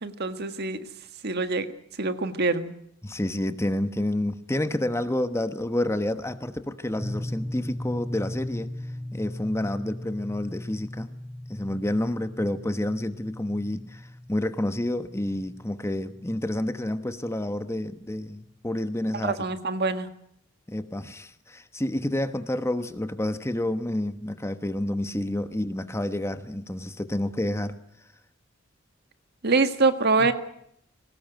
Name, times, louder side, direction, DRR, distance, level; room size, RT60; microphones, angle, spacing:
voice 1, 0.0-0.8 1.2-1.7 2.0-2.7 19.2-20.1 29.4-30.3, right 3 dB, 55° right, 9 dB, 1.7 m, -24 dB
voice 2, 3.0-8.7 9.1-11.1 11.5-19.4 20.7-27.8 30.2-30.3, left 1 dB, 15° left, 10 dB, 1.1 m, -29 dB
sound 1, 7.0-17.1, left 1 dB, 10° right, 4.3 m, -38 dB
21.5 x 19.0 x 9.2 m, 0.72 s
head